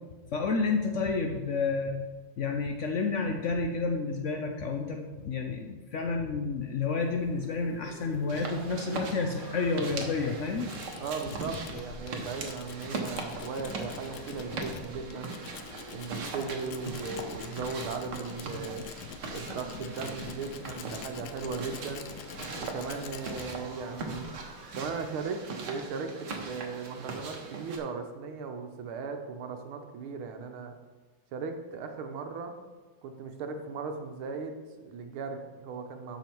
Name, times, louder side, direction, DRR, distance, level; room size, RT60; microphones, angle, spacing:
voice 1, 0.3-2.0 2.4-10.7, left 4 dB, 90° left, 3 dB, 0.6 m, -30 dB
sound 1, 6.9-12.0 15.1-18.9 19.6-25.3, equal, 15° right, 1.0 m, -53 dB
sound 2, 8.3-27.8, right 4 dB, 60° right, 1.8 m, -40 dB
Tools, 10.0-25.4, left 8 dB, 70° left, 1.0 m, -45 dB
voice 2, 11.0-15.3 15.9-18.8 19.3-22.1 22.6-24.3 24.7-30.8 31.3-32.5 33.0-36.2, right 5 dB, 85° right, 5 dB, 1.8 m, -37 dB
12.5 x 5.6 x 4.5 m, 1.3 s
omnidirectional pair, 2.2 m